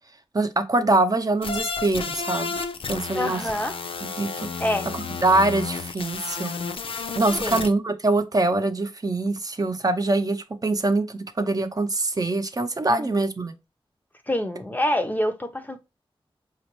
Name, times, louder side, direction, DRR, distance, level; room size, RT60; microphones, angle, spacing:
voice 1, 0.3-2.6 2.9-3.4 4.0-4.5 5.2-6.5 7.2-13.6, right 2 dB, 40° right, 0.7 m, -24 dB
sound 1, 1.4-7.7, left 5 dB, 70° left, 0.5 m, -32 dB
voice 2, 3.1-3.8 4.6-4.9 7.4-7.6 12.9-13.2 14.3-15.8, left 1 dB, 20° left, 0.6 m, -26 dB
5.0 x 2.5 x 3.0 m
wide cardioid pair, 85°, 10 cm